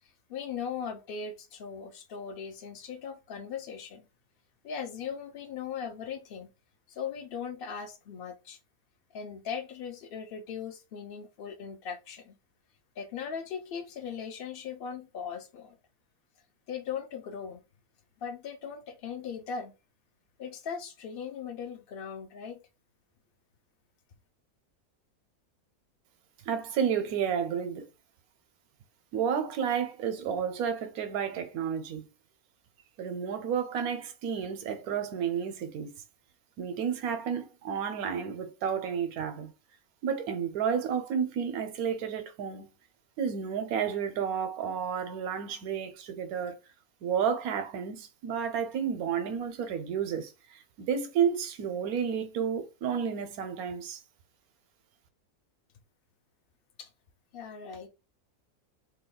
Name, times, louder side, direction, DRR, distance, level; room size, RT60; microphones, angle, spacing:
voice 1, 0.0-4.1 4.6-6.5 6.9-8.6 9.1-12.4 13.0-15.8 16.7-17.6 18.2-19.7 20.4-22.6 56.8-56.9 57.3-57.9, left 7 dB, 70° left, 0.5 m, -39 dB
voice 2, 26.5-27.9 29.1-32.1 33.0-35.9 36.6-39.5 40.0-42.7 43.2-46.6 47.0-54.0, right 7 dB, 80° right, 1.1 m, -31 dB
2.8 x 2.3 x 3.6 m
omnidirectional pair, 1.6 m